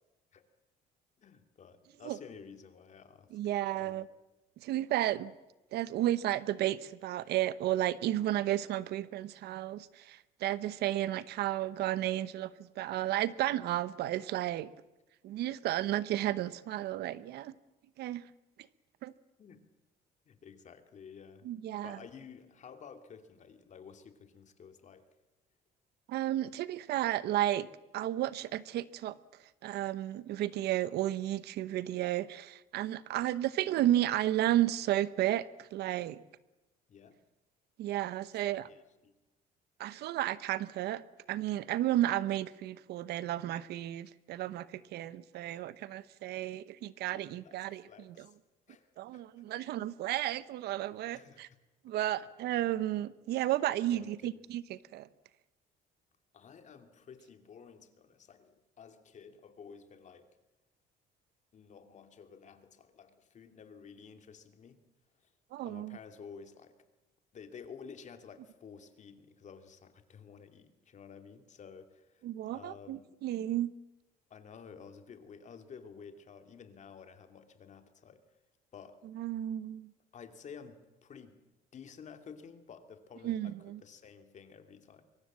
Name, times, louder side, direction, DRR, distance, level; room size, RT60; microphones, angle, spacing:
voice 1, 1.2-3.4 3.7-4.1 19.4-19.6 20.3-21.5 21.8-25.1 33.1-33.3 36.9-37.2 38.6-39.1 47.1-48.4 48.7-49.2 49.5-49.6 51.1-51.6 52.0-52.3 53.9-54.4 56.3-60.3 61.5-64.8 65.2-65.3 65.6-66.8 67.3-72.3 72.5-73.0 74.3-78.2 78.7-79.0 80.1-81.4 81.7-85.0, left 6 dB, 45° left, 7 dB, 2.6 m, -52 dB
voice 2, 3.3-4.1 4.6-5.3 5.7-12.5 12.8-14.7 15.2-17.5 18.0-18.2 19.0-19.1 21.4-22.0 26.1-27.7 27.9-29.2 29.6-36.2 37.8-38.7 39.8-41.0 41.3-47.8 48.2-48.3 49.0-51.5 51.8-55.1 65.5-66.0 72.2-73.7 79.1-79.9 83.2-83.8, right 13 dB, 75° right, 16 dB, 0.9 m, -33 dB
24.0 x 23.0 x 7.6 m, 1.0 s
cardioid pair, 110°, 17 cm